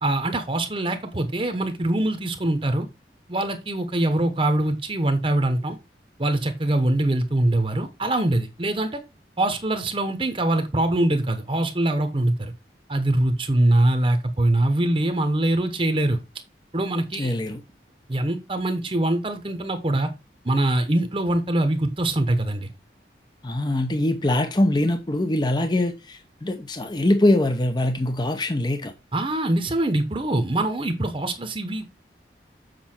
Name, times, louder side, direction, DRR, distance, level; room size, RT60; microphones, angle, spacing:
voice 1, 0.0-2.9 3.3-5.8 6.2-9.0 9.4-12.5 12.9-16.2 16.7-17.3 18.1-20.1 20.4-22.7 29.1-31.8, right 1 dB, 30° right, 0.9 m, -23 dB
voice 2, 17.2-17.6 23.4-28.9, left 1 dB, 25° left, 0.7 m, -23 dB
7.7 x 5.6 x 4.4 m
head